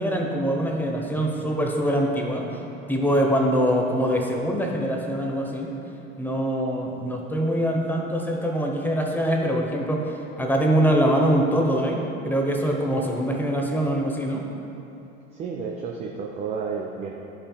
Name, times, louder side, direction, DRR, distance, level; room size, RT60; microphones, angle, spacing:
voice 1, 0.0-2.6 2.9-5.7 6.2-14.5, equal, 5° left, 0 dB, 0.8 m, -24 dB
voice 2, 15.3-17.1, right 5 dB, 20° right, 0 dB, 0.3 m, -31 dB
12.5 x 5.0 x 2.2 m, 2.9 s
figure-of-eight pair, 75°, 38 cm